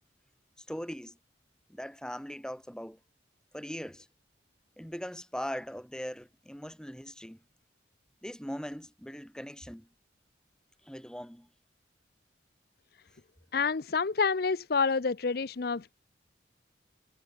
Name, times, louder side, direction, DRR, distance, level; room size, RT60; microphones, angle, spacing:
voice 1, 0.6-1.2 1.7-3.0 3.5-4.1 4.8-7.4 8.2-9.9 10.8-11.5, equal, 5° left, 2.1 m, -40 dB
voice 2, 13.5-15.9, left 4 dB, 55° left, 0.6 m, -28 dB
head